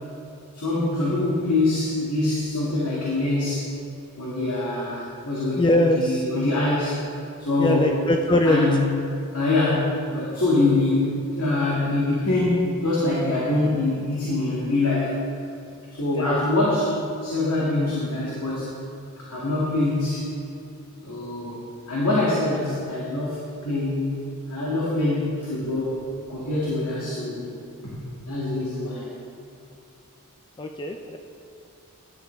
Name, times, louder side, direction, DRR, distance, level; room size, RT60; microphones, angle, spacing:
voice 1, 0.5-3.7 4.2-5.6 5.9-7.0 7.4-7.9 8.4-8.8 9.3-15.2 15.9-18.7 19.3-20.3 21.0-24.2 24.5-26.0 26.3-27.5 27.8-28.0 28.3-29.1, left 2 dB, 75° left, -7 dB, 2.3 m, -24 dB
voice 2, 5.6-6.2 7.6-8.7 16.1-16.4 30.6-31.2, left 1 dB, 20° left, 3 dB, 0.4 m, -21 dB
12.0 x 10.5 x 3.5 m, 2.5 s
head